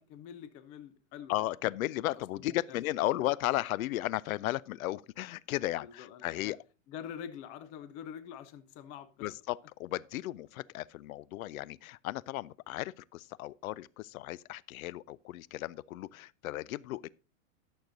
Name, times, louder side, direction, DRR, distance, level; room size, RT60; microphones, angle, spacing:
voice 1, 0.0-1.3 2.1-2.8 5.8-6.5 6.9-9.3, left 8 dB, 20° left, 0.4 m, -46 dB
voice 2, 1.3-6.6 9.2-17.1, left 16 dB, 80° left, 0.5 m, -35 dB
11.5 x 6.5 x 3.9 m
supercardioid pair, 150°, 41 cm